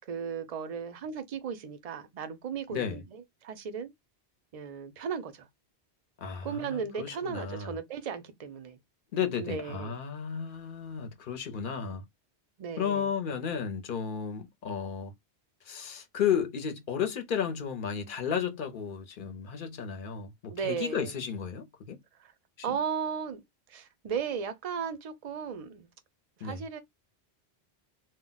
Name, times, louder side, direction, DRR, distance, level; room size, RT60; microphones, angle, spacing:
voice 1, 0.1-3.9 4.5-5.5 6.4-8.8 9.4-10.0 12.6-13.1 20.5-21.2 22.2-22.3 22.6-23.4 23.7-25.9 26.4-26.8, right 7 dB, 45° right, 0.5 m, -36 dB
voice 2, 2.7-3.0 6.2-7.7 9.1-12.0 12.8-15.1 15.7-22.0 22.6-22.8 26.4-26.6, left 7 dB, 55° left, 0.7 m, -33 dB
2.2 x 2.1 x 3.8 m
omnidirectional pair, 1.1 m